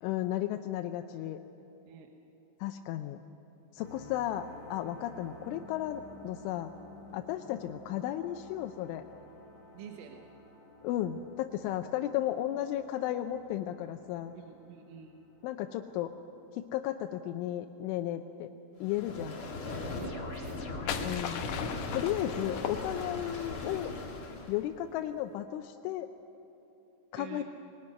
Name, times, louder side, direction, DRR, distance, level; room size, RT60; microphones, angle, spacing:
voice 1, 0.0-1.4 2.6-3.2 3.7-6.7 7.1-9.0 10.8-14.3 15.4-16.1 16.5-18.5 18.8-19.4 21.0-21.4 21.9-23.9 24.5-26.1 27.1-27.4, left 12 dB, 90° left, 6 dB, 3.2 m, -34 dB
sound 1, 3.8-16.5, left 1 dB, 55° right, 8.1 m, -53 dB
voice 2, 9.7-10.3 14.3-15.2 20.0-20.6 27.1-27.4, right 8 dB, 90° right, 3 dB, 3.6 m, -48 dB
sound 2, 18.8-24.6, left 3 dB, 40° left, 2.0 m, -38 dB
sound 3, 20.4-23.4, left 8 dB, 70° left, 2.5 m, -38 dB
21.5 x 19.5 x 9.6 m, 2.9 s
omnidirectional pair, 5.4 m